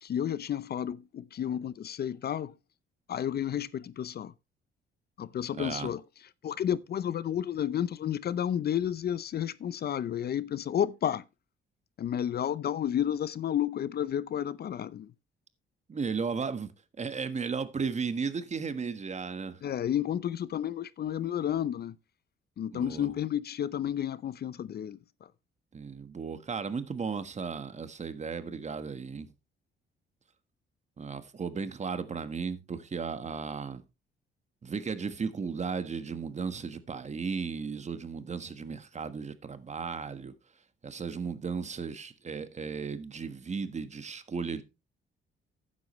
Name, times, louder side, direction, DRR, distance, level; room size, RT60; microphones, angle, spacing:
voice 1, 0.0-2.5 3.1-4.3 5.2-6.0 6.4-11.3 12.0-15.1 19.6-22.0 22.6-25.3, left 10 dB, 55° left, 0.6 m, -31 dB
voice 2, 5.6-5.9 15.9-16.7 17.0-19.6 22.7-23.1 25.7-29.3 31.0-33.8 34.6-40.3 40.8-44.6, right 5 dB, 35° right, 1.4 m, -35 dB
12.0 x 9.7 x 3.2 m
cardioid pair, 90°, 20 cm